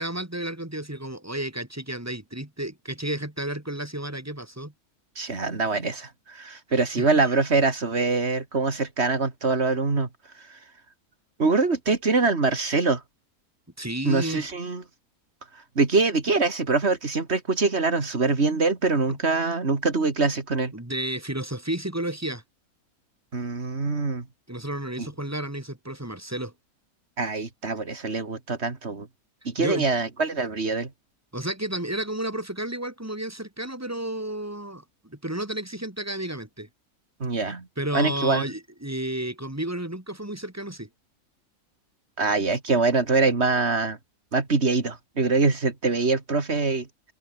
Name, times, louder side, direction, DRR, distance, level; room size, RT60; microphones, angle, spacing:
voice 1, 0.0-4.7 7.0-7.3 13.8-14.5 20.7-22.4 24.5-26.5 29.6-29.9 31.3-36.7 37.8-40.9, right 1 dB, 10° right, 3.0 m, -32 dB
voice 2, 5.2-10.1 10.5-10.6 11.4-13.0 14.0-14.8 15.8-20.7 23.3-24.3 25.0-25.1 27.2-29.1 29.4-30.9 37.2-37.7 37.9-38.4 42.2-44.0 44.3-47.1, right 3 dB, 45° right, 3.0 m, -24 dB
omnidirectional pair, 1.6 m